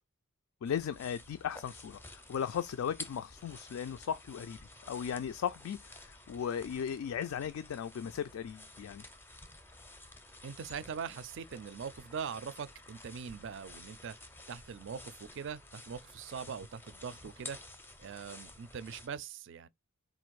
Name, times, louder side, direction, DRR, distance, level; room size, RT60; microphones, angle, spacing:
voice 1, 0.6-4.6 4.9-9.0, left 8 dB, 75° left, 0.3 m, -37 dB
sound 1, 0.6-19.1, left 2 dB, 10° left, 0.5 m, -52 dB
voice 2, 10.4-14.2 14.5-17.6 18.0-19.7, right 6 dB, 60° right, 0.4 m, -42 dB
4.0 x 2.5 x 4.6 m
head